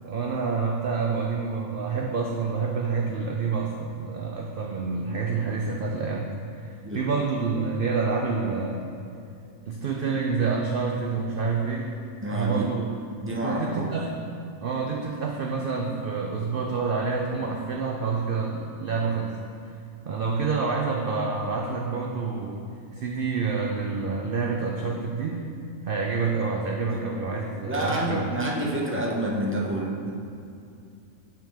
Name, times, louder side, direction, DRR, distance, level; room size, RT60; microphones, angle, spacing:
voice 1, 0.0-8.8 9.7-11.9 12.3-12.9 13.3-14.1 14.6-19.4 20.1-22.6 22.9-25.5 25.9-28.3, right 4 dB, 90° right, 0 dB, 0.4 m, -28 dB
voice 2, 12.2-12.6 13.2-13.9 26.9-27.0 27.7-30.1, right 1 dB, 15° right, -3 dB, 0.5 m, -28 dB
7.2 x 5.7 x 3.4 m, 2.5 s
omnidirectional pair, 1.5 m